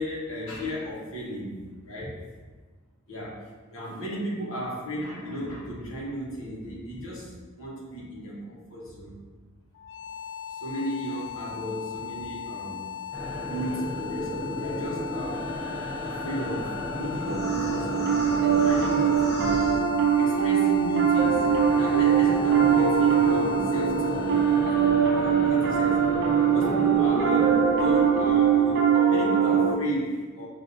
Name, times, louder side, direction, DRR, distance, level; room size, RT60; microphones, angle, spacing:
voice 1, 0.0-2.2 3.1-9.2 10.5-12.9 13.4-15.5 16.0-18.1 18.6-19.9 20.2-24.3 25.1-26.2 26.5-30.5, equal, 75° left, -6 dB, 1.2 m, -35 dB
sound 1, 9.7-26.7, left 9 dB, 60° left, 0.3 m, -38 dB
sound 2, 13.1-20.5 20.7-28.7, equal, 10° left, 1.3 m, -34 dB
Piano, 17.3-29.7, right 7 dB, 55° right, 0.5 m, -22 dB
6.7 x 2.7 x 2.6 m, 1.4 s
head